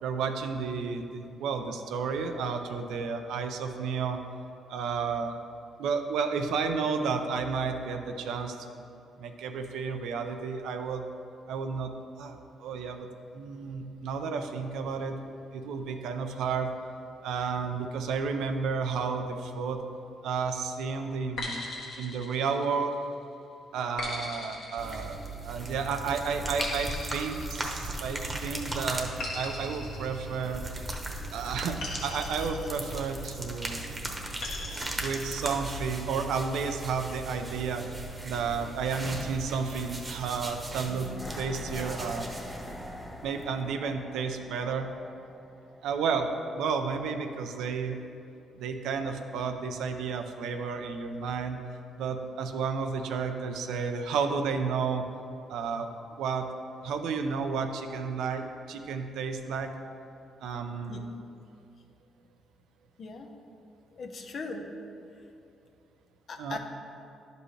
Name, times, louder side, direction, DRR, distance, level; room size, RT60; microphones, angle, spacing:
voice 1, 0.0-4.2 4.7-5.4 5.8-8.8 9.2-11.0 11.5-11.9 12.2-13.1 13.3-15.2 15.5-16.7 17.2-19.8 20.2-21.6 22.0-22.9 23.7-25.2 25.4-30.6 31.3-33.9 35.0-37.8 38.2-41.1 41.4-42.3 43.2-44.9 45.8-48.0 48.6-51.6 52.0-55.0 55.5-55.9 56.2-56.5 56.8-59.7 60.4-61.1 66.4-66.6, right 5 dB, 85° right, 6 dB, 0.6 m, -32 dB
sound 1, 21.4-23.0 24.0-25.6 26.6-28.3 29.2-30.9 31.8-33.3 34.4-35.5, left 2 dB, 75° left, 1.5 m, -39 dB
sound 2, 24.8-43.7, right 2 dB, 25° right, 1.0 m, -38 dB
sound 3, 40.9-46.0 46.3-46.4, left 1 dB, 10° left, 0.7 m, -43 dB
voice 2, 63.0-63.3 64.0-64.6 66.3-66.6, left 4 dB, 55° left, 4 dB, 0.8 m, -39 dB
11.0 x 5.3 x 3.2 m, 2.7 s
cardioid pair, 90°, 0 cm